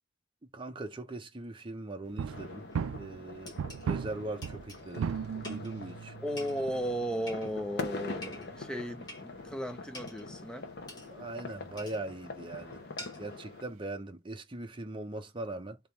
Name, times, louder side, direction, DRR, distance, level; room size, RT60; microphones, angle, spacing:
voice 1, 0.5-5.2 5.5-6.1 11.1-12.8 13.2-15.8, right 2 dB, 25° right, 0.7 m, -40 dB
sound 1, 2.1-9.7 10.0-10.2 10.7-10.8 11.0-11.1 11.3-11.4 11.6-11.9 12.6-12.7 13.2-13.3, right 7 dB, 75° right, 0.3 m, -39 dB
sound 2, 2.3-13.6, left 3 dB, 55° left, 0.9 m, -44 dB
sound 3, 2.7-2.8 3.5-3.9 4.4-4.8 5.4-5.7 6.4-6.7 7.3-7.7 8.2-8.5 9.1-9.3 9.9-10.3 10.9-11.1 11.8-12.0 13.0-13.3, left 1 dB, 20° left, 1.4 m, -47 dB
voice 2, 6.2-10.7, equal, 5° left, 0.4 m, -35 dB
3.7 x 2.9 x 3.2 m
head